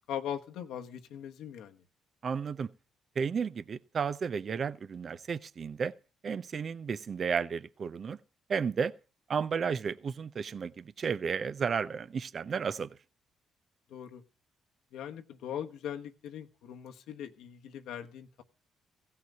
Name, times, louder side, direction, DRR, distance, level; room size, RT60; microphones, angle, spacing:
voice 1, 0.1-1.8 13.9-14.2 14.9-18.4, left 9 dB, 85° left, 1.1 m, -40 dB
voice 2, 2.2-2.7 3.2-5.9 6.2-8.2 8.5-8.9 9.3-12.9, right 6 dB, 50° right, 0.6 m, -33 dB
16.0 x 5.8 x 9.0 m
cardioid pair, 90°, 0 cm